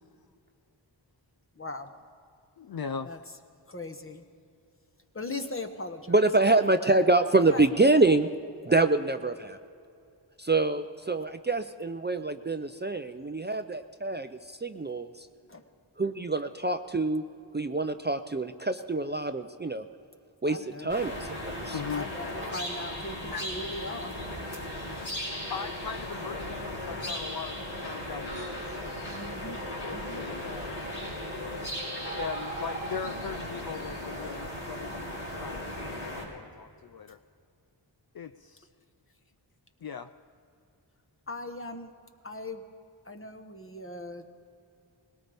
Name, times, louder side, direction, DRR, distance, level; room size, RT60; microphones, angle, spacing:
voice 1, 1.5-1.9 3.0-3.2 3.7-4.3 5.1-6.3 7.4-7.7 13.1-13.2 15.5-15.6 20.5-21.0 21.9-24.1 29.1-29.6 29.9-30.2 41.3-41.9 42.2-42.6 43.0-44.3, left 2 dB, 30° left, 6 dB, 1.2 m, -39 dB
voice 2, 2.6-3.1 21.7-22.1 23.3-23.5 25.5-28.7 29.8-31.0 32.0-37.2 38.1-38.7 39.8-40.1, left 6 dB, 55° left, 10 dB, 0.5 m, -39 dB
voice 3, 6.1-8.3 8.6-9.6 10.4-15.3 16.0-17.2 17.5-19.9 20.4-20.6 20.8-21.8, right 2 dB, 25° right, 8 dB, 0.5 m, -26 dB
sound 1, 20.9-36.2, left 1 dB, 75° left, 4.4 m, -36 dB
20.0 x 18.0 x 3.5 m, 2.5 s
cardioid pair, 50°, 46 cm